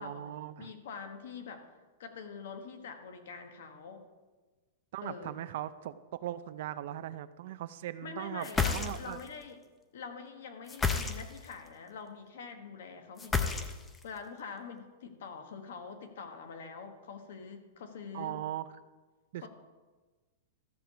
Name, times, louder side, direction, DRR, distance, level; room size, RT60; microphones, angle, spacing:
voice 1, 0.0-0.7 4.9-8.5 8.7-9.2 18.1-18.7 19.3-19.5, right 13 dB, 50° right, 14 dB, 0.4 m, -39 dB
voice 2, 0.6-4.1 5.0-5.3 8.0-9.6 9.9-13.7 14.0-18.4 19.3-19.5, left 5 dB, 65° left, 6 dB, 1.3 m, -45 dB
sound 1, 8.4-9.3 10.7-11.5 13.2-14.0, left 5 dB, 10° left, 0.5 m, -30 dB
13.5 x 4.7 x 6.9 m, 1.3 s
supercardioid pair, 170°, 0 cm